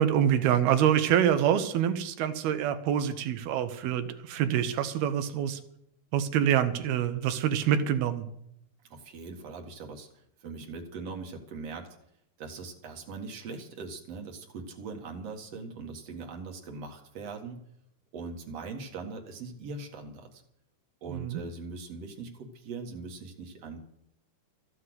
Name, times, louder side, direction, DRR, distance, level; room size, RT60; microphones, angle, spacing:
voice 1, 0.0-5.6 6.1-8.3 21.1-21.4, right 9 dB, 80° right, 9 dB, 3.0 m, -26 dB
voice 2, 8.9-11.9 12.4-17.6 18.1-20.4 21.0-23.8, right 4 dB, 50° right, 2 dB, 2.4 m, -41 dB
14.5 x 8.5 x 7.8 m, 0.75 s
omnidirectional pair, 4.5 m